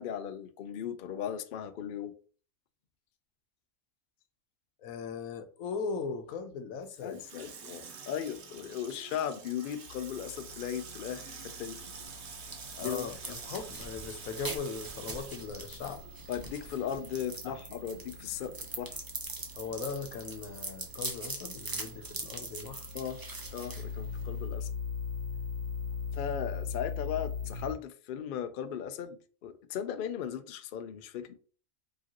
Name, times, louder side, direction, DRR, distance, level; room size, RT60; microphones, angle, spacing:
voice 1, 0.0-2.1 7.0-11.8 12.8-13.1 16.3-19.0 22.9-23.2 23.5-24.7 26.1-31.3, left 9 dB, 65° left, 0.5 m, -37 dB
voice 2, 4.8-7.2 12.8-16.0 17.4-17.6 19.6-22.9, left 5 dB, 90° left, 1.1 m, -39 dB
Water tap faucet / Sink (filling or washing), 6.8-16.5 16.8-16.9, right 6 dB, 60° right, 1.0 m, -47 dB
sound 1, 9.9-27.7, left 5 dB, 90° right, 1.2 m, -42 dB
sound 2, 11.8-24.5, right 2 dB, 25° right, 0.5 m, -43 dB
4.9 x 3.0 x 2.9 m
omnidirectional pair, 1.4 m